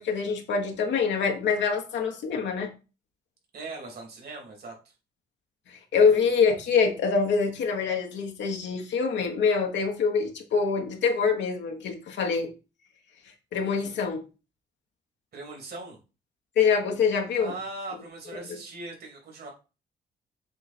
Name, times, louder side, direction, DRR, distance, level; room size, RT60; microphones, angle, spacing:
voice 1, 0.0-2.7 5.7-12.5 13.5-14.3 16.6-17.5, left 5 dB, 80° left, 1.2 m, -25 dB
voice 2, 3.5-4.9 5.9-6.3 15.3-16.0 17.4-19.5, right 2 dB, 60° right, 2.9 m, -40 dB
7.6 x 3.1 x 4.3 m
cardioid pair, 70°, 18 cm